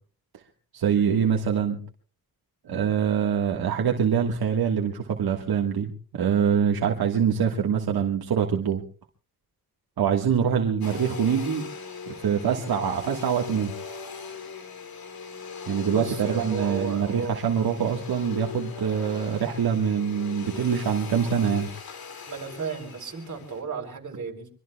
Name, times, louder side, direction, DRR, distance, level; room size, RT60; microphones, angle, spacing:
voice 1, 0.7-1.8 2.6-8.8 10.0-11.7 12.1-13.7 15.7-21.7, right 7 dB, 75° right, 2 dB, 1.6 m, -24 dB
Domestic sounds home sounds, 10.8-23.6, left 6 dB, 70° left, 2.9 m, -39 dB
voice 2, 15.9-17.4 22.3-24.5, right 5 dB, 50° right, 2 dB, 3.9 m, -33 dB
24.0 x 24.0 x 2.3 m, 0.39 s
cardioid pair, 95°, 37 cm